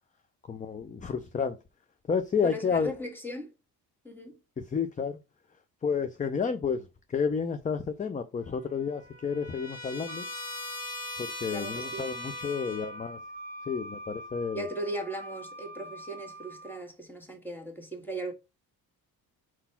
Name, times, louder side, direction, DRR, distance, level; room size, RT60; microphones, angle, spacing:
voice 1, 0.5-1.6 2.1-2.9 4.6-5.2 5.8-10.3 11.2-13.2 13.7-14.7, left 6 dB, 20° left, 0.5 m, -31 dB
voice 2, 2.4-3.5 4.0-4.4 11.5-12.1 14.5-18.3, right 1 dB, 5° left, 1.7 m, -38 dB
Trumpet, 8.4-13.1, left 2 dB, 40° left, 2.2 m, -41 dB
Wind instrument woodwind instrument, 10.1-16.8, right 1 dB, 25° right, 1.7 m, -44 dB
4.4 x 4.1 x 5.7 m
cardioid pair, 130°, 39 cm